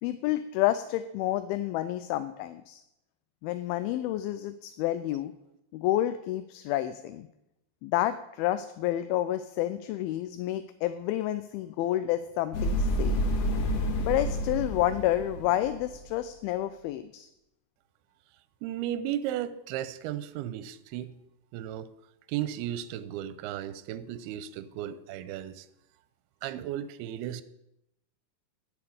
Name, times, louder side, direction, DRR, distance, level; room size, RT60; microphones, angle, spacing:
voice 1, 0.0-2.8 3.4-5.3 5.7-7.3 7.8-13.2 14.0-17.3, left 13 dB, 80° left, 2.3 m, -29 dB
sound 1, 12.5-16.0, equal, 60° left, 2.4 m, -29 dB
voice 2, 18.6-21.1 21.5-21.9 22.3-25.7 26.4-27.4, right 11 dB, 85° right, 2.6 m, -35 dB
9.7 x 7.0 x 8.6 m
omnidirectional pair, 4.5 m